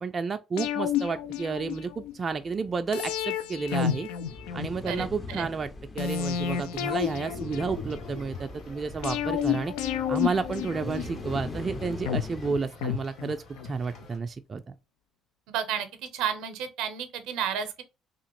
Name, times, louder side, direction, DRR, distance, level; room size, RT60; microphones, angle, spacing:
voice 1, 0.0-4.1 4.5-9.7 10.1-14.8, right 4 dB, 40° right, 0.3 m, -31 dB
sound 1, 0.6-2.1 2.9-5.1 6.0-8.2 9.0-11.4 12.1-13.7 14.0-14.1, left 9 dB, 85° left, 0.3 m, -31 dB
sound 2, 4.2-12.6, left 3 dB, 30° left, 0.6 m, -41 dB
voice 2, 4.9-5.5 15.5-15.9 16.1-17.8, right 8 dB, 80° right, 0.6 m, -31 dB
sound 3, 7.7-14.2, left 1 dB, 65° left, 1.8 m, -48 dB
2.8 x 2.5 x 2.9 m
supercardioid pair, 70°, 0 cm